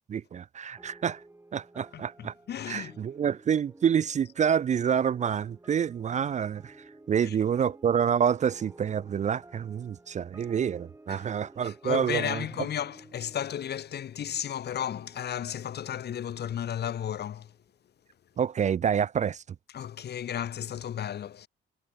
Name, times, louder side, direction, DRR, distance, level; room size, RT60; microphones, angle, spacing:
voice 1, 0.1-1.2 1.5-2.3 2.7-12.5 18.4-19.4, right 8 dB, 35° right, 0.4 m, -28 dB
sound 1, 0.8-17.6, right 2 dB, 15° right, 2.1 m, -55 dB
voice 2, 2.5-3.0 11.1-11.2 11.6-17.5 19.7-21.5, left 9 dB, 55° left, 1.2 m, -33 dB
cardioid pair, 90°, 20 cm